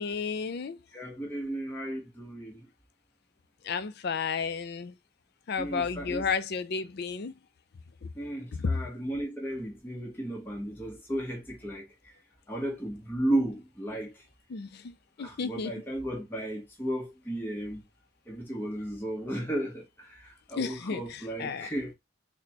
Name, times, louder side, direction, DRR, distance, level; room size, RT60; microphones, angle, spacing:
voice 1, 0.0-0.8 3.6-4.9 5.5-7.3 8.0-8.1 8.5-8.7 14.5-14.9 15.2-15.7 20.6-21.7, left 5 dB, 55° left, 0.4 m, -32 dB
voice 2, 0.9-2.7 5.6-6.3 8.1-12.1 12.5-14.1 15.2-17.8 18.3-21.9, right 1 dB, 10° left, 1.0 m, -34 dB
4.2 x 2.2 x 4.1 m
head